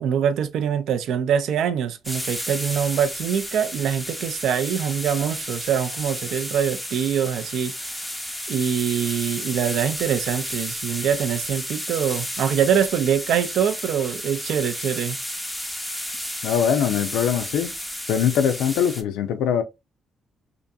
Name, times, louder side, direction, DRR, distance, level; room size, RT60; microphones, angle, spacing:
voice 1, 0.0-7.7 8.5-15.2, right 8 dB, 75° right, 0.3 m, -24 dB
sound 1, 2.0-19.0, equal, ahead, 0.5 m, -32 dB
voice 2, 16.4-17.7 18.1-19.6, left 8 dB, 90° left, 0.4 m, -22 dB
2.7 x 2.5 x 2.2 m
cardioid pair, 90°, 0 cm